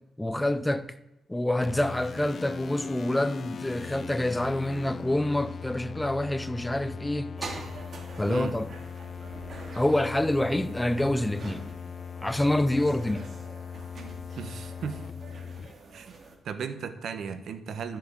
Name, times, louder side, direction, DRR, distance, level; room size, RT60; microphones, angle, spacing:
voice 1, 0.2-0.9 1.3-7.3 8.2-8.7 9.7-11.7 12.2-13.3, left 1 dB, 10° left, 0.6 m, -27 dB
sound 1, 1.6-15.7, left 6 dB, 50° left, 0.4 m, -40 dB
sound 2, 7.4-16.4, right 3 dB, 50° right, 2.4 m, -45 dB
voice 2, 14.4-15.0 15.9-16.1 16.4-18.0, right 6 dB, 70° right, 1.1 m, -35 dB
12.5 x 7.4 x 7.5 m
cardioid pair, 100°, 0 cm